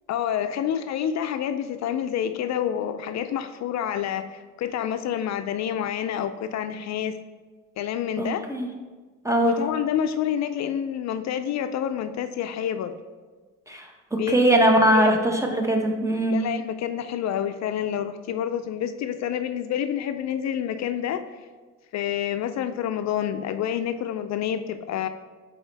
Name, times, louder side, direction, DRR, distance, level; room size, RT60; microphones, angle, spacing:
voice 1, 0.1-7.2 7.8-8.5 9.4-13.0 14.2-14.6 14.9-15.2 16.3-21.2 21.9-25.1, left 9 dB, 65° left, 9 dB, 0.4 m, -28 dB
voice 2, 8.2-8.7 9.2-9.6 13.7-13.8 14.1-16.4, right 1 dB, 10° right, 2 dB, 1.0 m, -21 dB
8.8 x 4.2 x 3.3 m, 1.4 s
cardioid pair, 90°, 30 cm